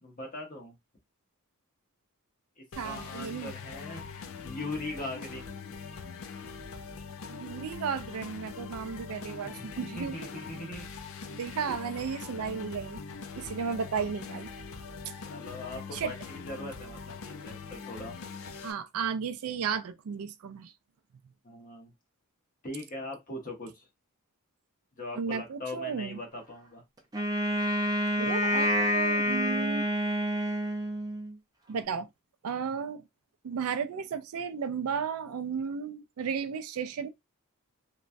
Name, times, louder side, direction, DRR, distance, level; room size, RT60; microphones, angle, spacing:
voice 1, 0.0-0.7 2.6-4.0 4.4-5.6 9.4-10.9 11.7-11.8 15.3-18.3 21.4-21.9 22.6-23.8 25.0-26.8, left 2 dB, 40° left, 0.9 m, -41 dB
sound 1, 2.7-18.7, left 5 dB, 65° left, 0.4 m, -42 dB
voice 2, 2.7-3.5 7.3-10.4 11.3-13.0 13.4-14.5 15.9-16.1 18.6-20.7 25.2-26.2 28.2-29.9 31.7-32.1 32.4-33.0 33.4-37.1, right 6 dB, 75° right, 0.4 m, -34 dB
Wind instrument woodwind instrument, 27.1-31.3, equal, 15° right, 0.5 m, -28 dB
3.0 x 2.2 x 2.5 m
head